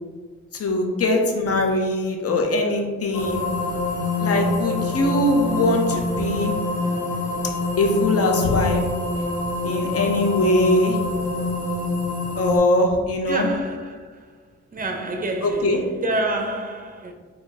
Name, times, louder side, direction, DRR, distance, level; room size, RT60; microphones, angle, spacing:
voice 1, 0.5-3.5 4.2-6.5 7.8-8.8 9.6-11.0 12.3-13.5 15.4-15.8, left 2 dB, 50° left, 0.8 m, -21 dB
sound 1, 3.1-12.6, left 2 dB, 70° left, 1.1 m, -26 dB
voice 2, 13.3-14.3 14.7-17.1, right 2 dB, 30° right, 0.6 m, -28 dB
4.2 x 2.3 x 3.3 m
supercardioid pair, 55°, 30 cm